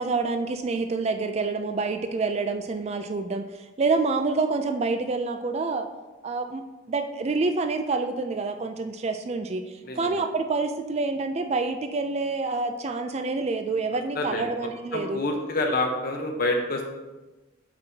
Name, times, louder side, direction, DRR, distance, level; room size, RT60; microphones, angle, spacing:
voice 1, 0.0-3.5 3.8-5.9 6.2-9.6 10.0-15.2, right 3 dB, 30° right, 7 dB, 0.3 m, -27 dB
voice 2, 9.8-10.2 14.1-16.9, left 2 dB, 45° left, 2 dB, 0.9 m, -28 dB
7.8 x 5.4 x 2.8 m, 1.1 s
head